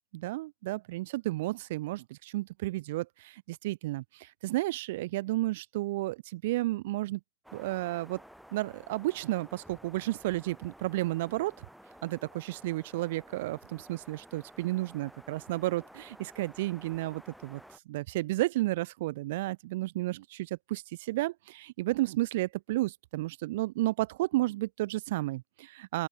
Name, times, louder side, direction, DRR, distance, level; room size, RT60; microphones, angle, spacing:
voice 1, 0.1-7.2 7.5-8.2 8.5-11.7 12.0-17.6 17.9-26.1, right 18 dB, 55° right, 2.0 m, -32 dB
sound 1, 7.4-17.8, equal, ahead, 7.3 m, -53 dB
open air
supercardioid pair, 155°, 0 cm